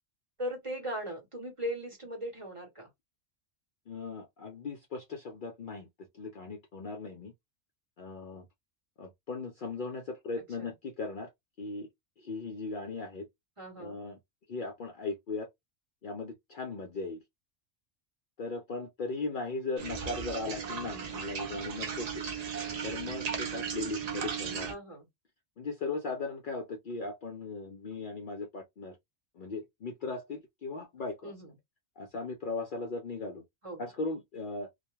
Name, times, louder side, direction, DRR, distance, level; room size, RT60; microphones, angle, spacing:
voice 1, 0.4-2.9 10.6-10.7 13.6-14.0 24.7-25.1 31.2-31.5 33.6-33.9, equal, 30° right, 0.9 m, -38 dB
voice 2, 3.9-5.9 6.1-7.3 8.0-8.5 9.0-11.3 11.6-11.9 12.2-13.3 13.8-14.2 14.5-15.5 16.0-17.2 18.4-22.2 22.8-24.8 25.6-29.0 29.4-31.3 32.0-33.4 33.8-34.7, left 3 dB, 60° left, 0.6 m, -38 dB
sound 1, 19.8-24.7, right 6 dB, 55° right, 0.4 m, -36 dB
2.2 x 2.1 x 2.9 m
omnidirectional pair, 1.2 m